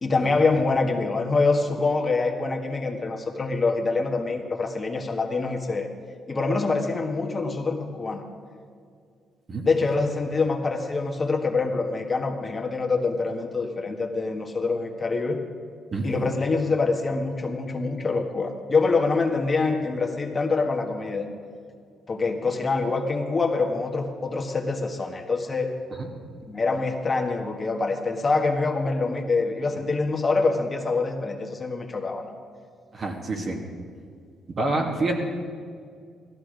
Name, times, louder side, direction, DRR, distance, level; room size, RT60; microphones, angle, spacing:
voice 1, 0.0-5.9 6.3-8.2 9.6-15.4 16.0-21.3 22.1-25.7 26.5-32.3 35.0-35.1, left 3 dB, 30° left, 2 dB, 1.6 m, -25 dB
voice 2, 32.9-33.6 34.6-35.2, right 2 dB, 45° right, 1 dB, 2.3 m, -26 dB
16.5 x 13.5 x 5.2 m, 2.2 s
cardioid pair, 90°, 0 cm